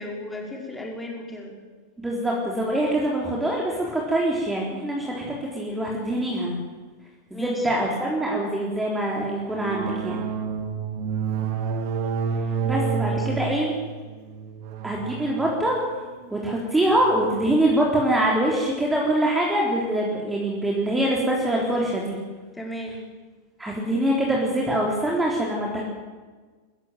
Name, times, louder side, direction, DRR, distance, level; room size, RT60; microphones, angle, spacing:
voice 1, 0.0-1.5 7.3-7.7 13.1-13.7 22.5-23.0, left 1 dB, 10° left, 0 dB, 5.4 m, -36 dB
voice 2, 2.0-5.2 5.5-6.6 7.3-10.2 12.6-13.7 14.8-16.0 16.3-22.2 23.6-25.8, right 1 dB, 10° right, -3 dB, 3.8 m, -24 dB
sound 1, 9.5-17.6, right 6 dB, 45° right, 2.5 m, -30 dB
22.0 x 15.0 x 9.3 m, 1.4 s
figure-of-eight pair, 90°, 0 cm